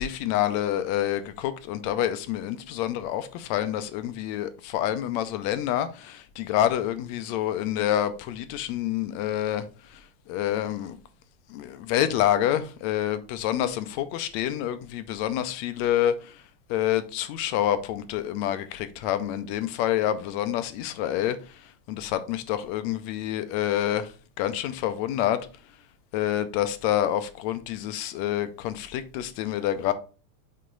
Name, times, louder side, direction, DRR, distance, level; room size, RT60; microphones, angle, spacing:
voice 1, 0.0-9.7 9.9-10.0 10.3-11.0 11.5-16.4 16.7-21.6 21.9-24.1 24.4-25.4 26.1-29.9, left 11 dB, 80° left, 1.8 m, -27 dB
6.6 x 4.1 x 3.8 m
omnidirectional pair, 3.3 m